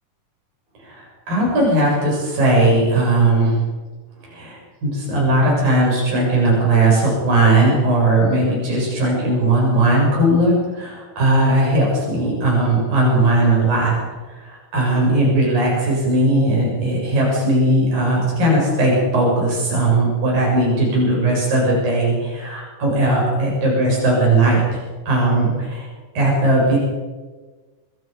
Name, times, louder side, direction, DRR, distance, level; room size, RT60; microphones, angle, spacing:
voice 1, 1.3-3.6 4.3-13.9 14.4-24.8 25.1-25.9 26.2-26.8, right 2 dB, 85° right, -3 dB, 9.3 m, -18 dB
26.5 x 24.0 x 5.4 m, 1.3 s
omnidirectional pair, 3.9 m